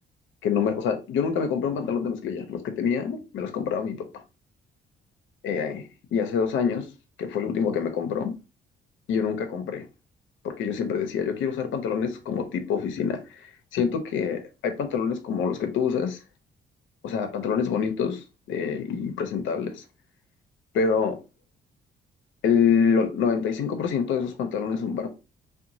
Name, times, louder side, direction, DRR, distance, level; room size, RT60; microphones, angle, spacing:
voice 1, 0.4-4.0 5.4-5.8 6.1-6.9 7.2-8.3 9.1-9.8 10.4-16.2 17.0-19.8 20.7-21.2 22.4-25.1, left 6 dB, 75° left, 0.6 m, -26 dB
2.8 x 2.2 x 2.6 m
cardioid pair, 90°, 20 cm